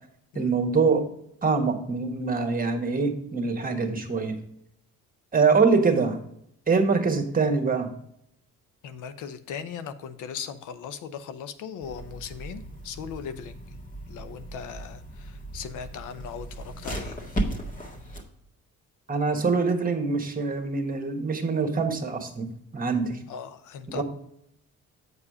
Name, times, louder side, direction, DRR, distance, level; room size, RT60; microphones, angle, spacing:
voice 1, 0.3-1.1 1.4-4.4 5.3-6.2 6.7-7.9 19.1-23.2 23.9-24.0, right 4 dB, 30° right, 5 dB, 1.5 m, -24 dB
voice 2, 8.8-13.6 14.1-17.2 23.3-24.0, left 7 dB, 85° left, 11 dB, 0.7 m, -38 dB
sound 1, 11.8-18.2, right 1 dB, 25° left, 1.7 m, -36 dB
8.1 x 4.9 x 4.8 m, 0.73 s
cardioid pair, 90°, 30 cm